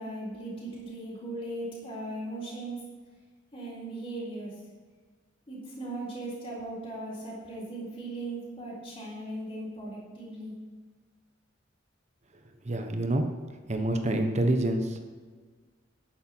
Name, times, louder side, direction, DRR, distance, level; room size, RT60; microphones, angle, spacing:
voice 1, 0.0-2.8 3.5-4.5 5.5-10.5, right 1 dB, 25° left, -8 dB, 3.8 m, -38 dB
voice 2, 12.6-13.3 13.7-15.0, right 1 dB, 35° right, 5 dB, 1.0 m, -27 dB
11.0 x 8.7 x 4.5 m, 1.4 s
head